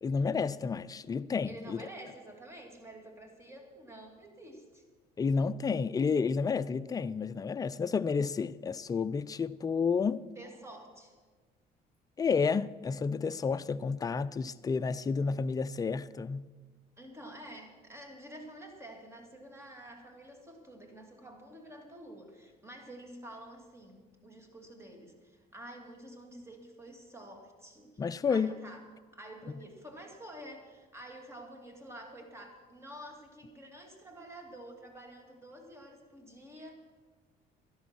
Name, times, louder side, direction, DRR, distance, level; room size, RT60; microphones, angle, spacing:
voice 1, 0.0-1.9 5.2-10.2 12.2-16.5 28.0-28.6, left 5 dB, 20° left, 0.4 m, -30 dB
voice 2, 1.4-4.9 10.4-11.2 17.0-28.0 28.3-28.9 29.1-36.7, right 1 dB, 15° right, 2.3 m, -49 dB
12.0 x 11.0 x 6.1 m
cardioid pair, 110°, 17 cm